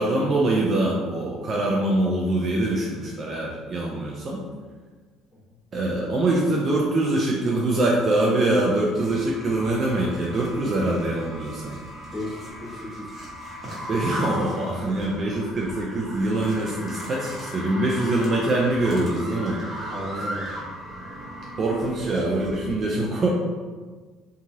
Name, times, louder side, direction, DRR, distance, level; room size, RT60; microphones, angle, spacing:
voice 1, 0.0-4.4 5.7-11.8 13.9-20.3 21.6-23.3, right 2 dB, 40° right, -3 dB, 0.4 m, -24 dB
sound 1, 8.9-22.7, equal, 15° right, 1.0 m, -37 dB
voice 2, 12.1-13.2 19.9-20.5, left 1 dB, 5° left, -8 dB, 1.2 m, -35 dB
2.9 x 2.3 x 2.7 m, 1.4 s
cardioid pair, 105°, 0 cm